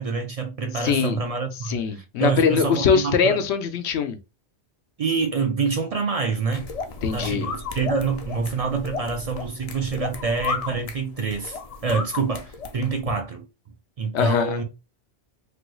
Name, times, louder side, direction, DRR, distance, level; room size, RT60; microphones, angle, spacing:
voice 1, 0.0-3.4 5.0-6.7 7.1-13.5 14.0-14.6, right 4 dB, 50° right, 0.4 m, -26 dB
voice 2, 0.8-1.2 1.7-4.2 7.0-7.5 14.1-14.6, left 6 dB, 85° left, 0.9 m, -22 dB
sound 1, 6.5-13.0, left 4 dB, 55° left, 0.4 m, -34 dB
3.3 x 2.2 x 3.0 m
omnidirectional pair, 1.1 m